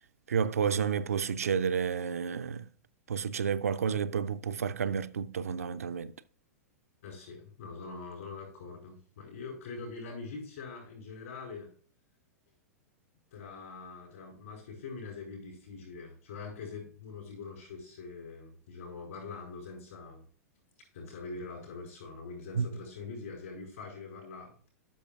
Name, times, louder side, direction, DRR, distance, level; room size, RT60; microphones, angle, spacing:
voice 1, 0.3-2.7 3.1-6.1 22.6-22.7, right 7 dB, 65° right, 0.4 m, -30 dB
voice 2, 7.0-11.7 13.3-20.2 20.9-24.7, left 4 dB, 60° left, 4.6 m, -43 dB
12.5 x 6.6 x 2.4 m
figure-of-eight pair, 95°, 8 cm